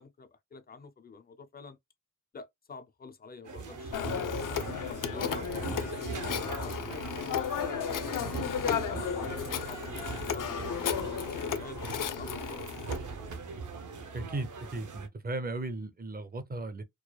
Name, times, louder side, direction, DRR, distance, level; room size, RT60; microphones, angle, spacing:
voice 1, 0.0-1.8 2.3-4.1 4.5-7.4 7.6-7.7 8.4-10.6 11.3-13.4, left 4 dB, 30° left, 0.5 m, -47 dB
sound 1, 3.4-15.1, right 4 dB, 70° right, 0.7 m, -40 dB
Telephone, 3.9-13.0, left 8 dB, 85° left, 0.6 m, -34 dB
voice 2, 14.1-16.8, right 2 dB, 30° right, 0.5 m, -36 dB
4.7 x 2.2 x 2.2 m
wide cardioid pair, 175°, 31 cm